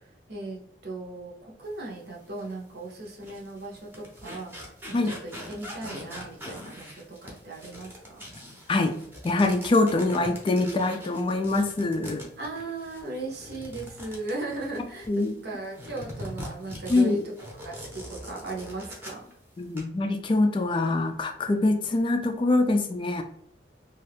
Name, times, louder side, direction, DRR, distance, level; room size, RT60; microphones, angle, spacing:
voice 1, 0.3-8.2 12.4-15.1 15.4-17.2 17.6-19.3, right 2 dB, 65° right, -1 dB, 0.8 m, -37 dB
sound 1, 2.4-2.5 3.1-15.3 15.7-19.3 19.6-19.8, equal, 10° right, 0.7 m, -42 dB
voice 2, 9.2-12.3 15.1-15.4 16.9-17.2 19.6-23.2, left 2 dB, 30° left, 6 dB, 0.3 m, -24 dB
2.6 x 2.3 x 3.3 m, 0.68 s
head